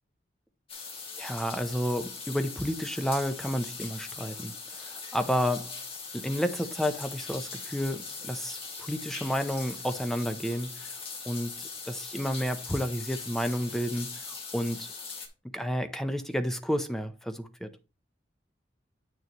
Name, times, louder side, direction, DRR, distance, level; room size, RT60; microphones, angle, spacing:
sound 1, 0.7-15.3, left 4 dB, 30° left, 2.1 m, -41 dB
voice 1, 1.1-5.8 6.1-10.9 11.2-14.9 15.5-17.7, equal, ahead, 0.8 m, -31 dB
9.3 x 6.8 x 3.1 m
head